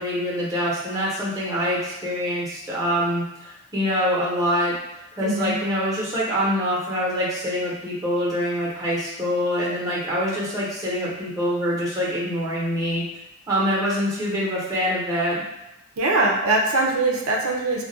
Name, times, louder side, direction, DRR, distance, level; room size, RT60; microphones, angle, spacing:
voice 1, 0.0-4.7 5.2-13.0 13.5-15.4, equal, 15° right, -6 dB, 0.8 m, -25 dB
voice 2, 5.2-5.6 16.0-17.8, right 2 dB, 85° right, -1 dB, 0.5 m, -22 dB
2.3 x 2.1 x 3.9 m, 0.92 s
head